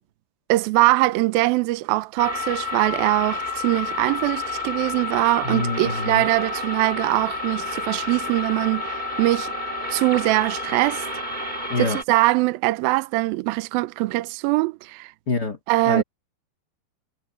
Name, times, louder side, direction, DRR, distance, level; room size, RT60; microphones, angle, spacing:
voice 1, 0.5-9.5 9.9-11.1 11.8-15.1 15.7-16.0, right 19 dB, 80° right, 2.2 m, -22 dB
sound 1, 2.2-12.0, left 3 dB, 20° right, 1.4 m, -30 dB
voice 2, 5.4-6.3 11.7-12.0 15.3-15.6 15.8-16.0, left 3 dB, 80° left, 0.9 m, -26 dB
omnidirectional pair, 5.0 m